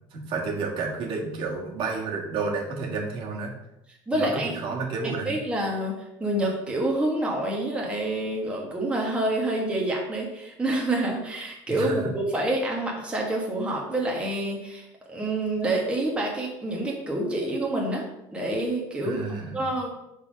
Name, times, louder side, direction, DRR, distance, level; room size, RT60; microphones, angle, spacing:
voice 1, 0.1-3.5 4.1-5.4 11.7-12.0 19.0-19.7, right 4 dB, 60° right, -1 dB, 1.7 m, -31 dB
voice 2, 4.1-4.5 5.2-5.9 6.2-18.0 18.3-19.2 19.5-19.9, right 1 dB, 10° right, -2 dB, 1.4 m, -27 dB
5.8 x 4.2 x 5.1 m, 0.85 s
cardioid pair, 135°, 10 cm